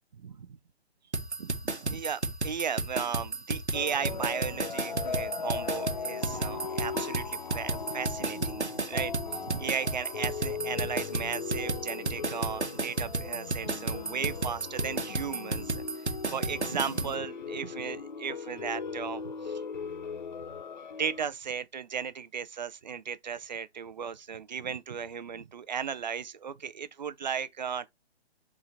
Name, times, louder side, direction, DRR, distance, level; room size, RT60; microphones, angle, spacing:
voice 1, 0.1-0.6 1.4-1.5 1.8-19.6 21.0-27.9, right 7 dB, 40° right, 0.7 m, -36 dB
sound 1, 1.1-17.1, right 3 dB, 90° right, 1.3 m, -32 dB
sound 2, 3.7-21.3, left 5 dB, 45° left, 0.5 m, -38 dB
7.3 x 3.8 x 4.0 m
figure-of-eight pair, 135°, 33 cm